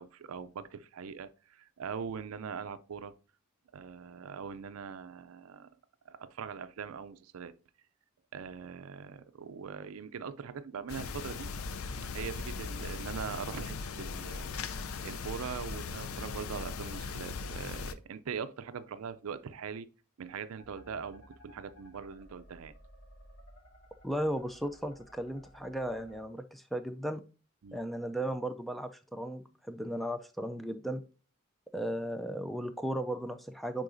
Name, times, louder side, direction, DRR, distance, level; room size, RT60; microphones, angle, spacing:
voice 1, 0.0-3.1 3.7-5.7 6.1-7.5 8.3-11.5 12.1-14.6 15.0-19.9 20.2-22.7 27.6-27.8, right 6 dB, 80° right, 0.4 m, -41 dB
sound 1, 10.9-17.9, left 4 dB, 75° left, 0.5 m, -39 dB
sound 2, 20.6-26.2, equal, 60° left, 1.9 m, -57 dB
voice 2, 24.0-27.2 27.7-31.0 31.7-33.8, right 1 dB, ahead, 0.3 m, -36 dB
9.6 x 3.8 x 2.6 m
head